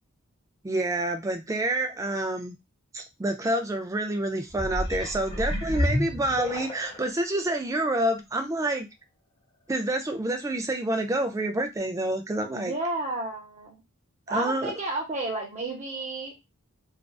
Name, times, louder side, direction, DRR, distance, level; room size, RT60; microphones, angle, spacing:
voice 1, 0.6-2.6 2.9-8.9 9.7-12.7 14.3-14.7, right 1 dB, 15° right, 5 dB, 0.3 m, -28 dB
sound 1, 4.5-7.1 7.7-7.8, left 1 dB, 20° left, 0.6 m, -29 dB
voice 2, 12.5-13.8 14.3-16.4, right 2 dB, 30° right, 1 dB, 0.7 m, -32 dB
2.4 x 2.3 x 2.2 m, 0.22 s
head